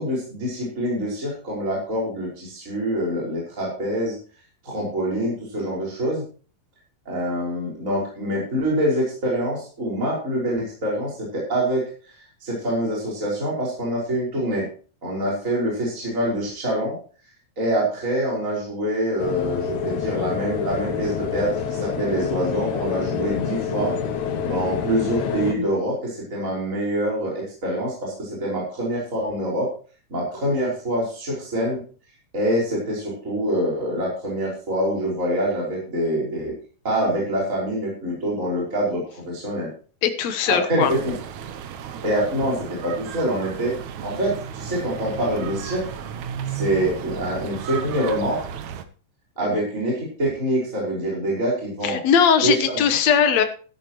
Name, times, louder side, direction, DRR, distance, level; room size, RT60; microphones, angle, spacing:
voice 1, 0.0-4.2 4.6-6.2 7.1-14.7 15.0-17.0 17.6-23.9 24.4-29.7 30.1-31.8 32.3-36.5 36.8-39.7 40.5-41.2 42.0-45.9 46.5-48.4 49.4-52.0 52.4-52.8, right 1 dB, 20° right, -4 dB, 5.6 m, -25 dB
sound 1, 19.2-25.5, left 7 dB, 85° left, 3.6 m, -27 dB
voice 2, 40.0-40.9 49.4-49.6 51.8-53.4, left 7 dB, 65° left, 8 dB, 1.8 m, -19 dB
sound 2, 40.8-48.8, right 8 dB, 70° right, 1.8 m, -34 dB
13.5 x 13.0 x 3.1 m, 0.39 s
omnidirectional pair, 4.5 m